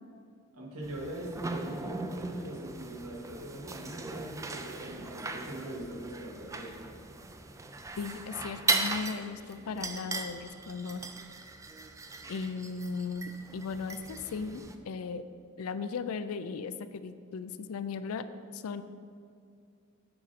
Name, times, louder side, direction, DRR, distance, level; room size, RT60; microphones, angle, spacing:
voice 1, 0.5-6.8, right 1 dB, 75° right, -3 dB, 1.7 m, -41 dB
sound 1, 0.8-14.8, right 3 dB, 15° right, 0.3 m, -38 dB
voice 2, 8.0-11.0 12.3-15.2 15.6-18.8, left 5 dB, 70° left, 12 dB, 0.4 m, -37 dB
8.9 x 5.4 x 4.1 m, 2.4 s
head